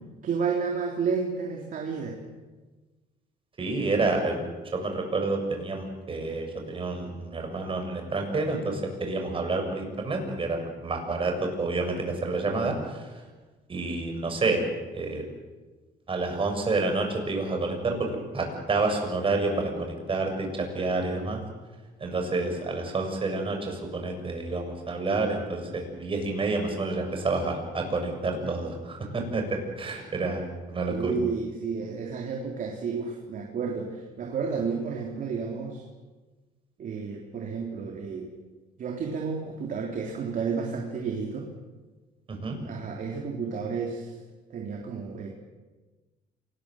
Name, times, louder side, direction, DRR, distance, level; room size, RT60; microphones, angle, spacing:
voice 1, 0.2-2.2 30.9-35.8 36.8-38.3 38.8-41.5 42.6-44.2 44.5-45.3, right 5 dB, 50° right, 1 dB, 3.6 m, -31 dB
voice 2, 3.6-4.4 4.7-13.2 13.7-14.6 14.9-15.2 16.1-21.4 22.0-31.2 42.3-42.6, right 3 dB, 30° right, 3 dB, 7.2 m, -29 dB
27.0 x 20.0 x 7.9 m, 1.3 s
cardioid pair, 110°, 17 cm